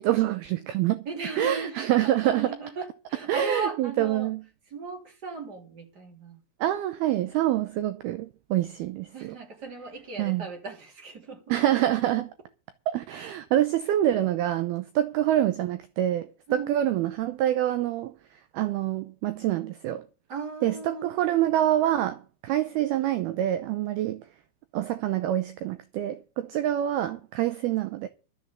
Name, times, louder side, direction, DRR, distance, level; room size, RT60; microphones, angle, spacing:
voice 1, 0.0-1.1 1.4-2.6 3.3-4.4 6.6-9.4 10.2-10.5 11.5-12.3 12.9-20.1 20.6-24.3 24.7-28.1, right 12 dB, 85° right, 2.2 m, -26 dB
voice 2, 1.0-4.3 4.7-6.4 9.1-11.4 16.5-16.7 20.3-21.1 22.5-22.6, right 4 dB, 25° right, 2.6 m, -37 dB
12.5 x 7.3 x 8.0 m
omnidirectional pair, 5.4 m